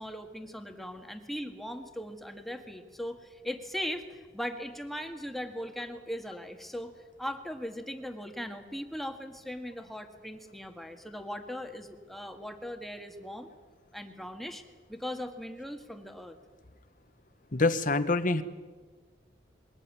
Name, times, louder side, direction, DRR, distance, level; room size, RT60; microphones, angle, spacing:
voice 1, 0.0-6.9 7.2-13.5 13.9-14.6 14.9-16.4, equal, ahead, 5 dB, 1.7 m, -39 dB
voice 2, 17.5-18.4, left 3 dB, 45° left, 11 dB, 1.2 m, -25 dB
22.0 x 18.5 x 9.6 m, 1.4 s
head